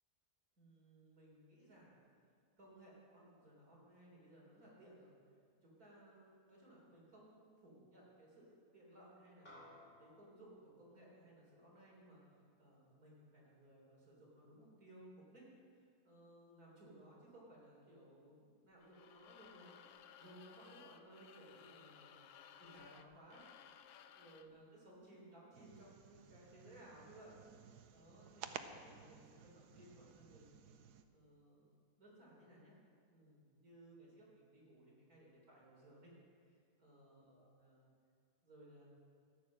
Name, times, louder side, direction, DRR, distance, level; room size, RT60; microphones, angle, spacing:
voice 1, 0.6-1.9 2.6-5.1 5.6-9.6 10.0-12.2 12.6-15.5 16.0-19.9 20.2-22.3 22.6-23.4 24.2-27.4 27.9-30.6 31.1-31.7 32.0-32.8 33.1-36.1 36.4-37.9 38.4-38.9, right 1 dB, 65° right, -4 dB, 4.1 m, -61 dB
sound 1, 9.5-14.1, left 1 dB, 35° left, 3.2 m, -64 dB
sound 2, 18.8-24.6, left 8 dB, 75° left, 1.1 m, -60 dB
sound 3, 25.5-31.0, right 8 dB, 90° right, 1.2 m, -55 dB
13.5 x 9.2 x 6.4 m, 2.2 s
omnidirectional pair, 1.7 m